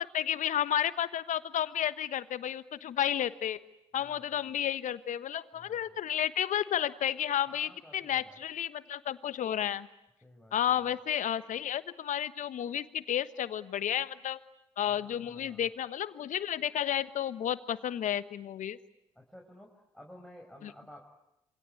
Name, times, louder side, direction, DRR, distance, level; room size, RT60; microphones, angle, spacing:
voice 1, 0.0-3.6 3.9-9.9 10.5-14.4 14.8-18.8 20.6-20.7, left 10 dB, 55° left, 14 dB, 1.3 m, -32 dB
voice 2, 4.0-4.4 5.5-5.9 7.5-8.4 10.2-10.9 14.8-15.7 19.2-21.0, left 1 dB, 5° left, 0 dB, 5.7 m, -54 dB
27.5 x 25.5 x 8.4 m, 0.87 s
hypercardioid pair, 45°, 15 cm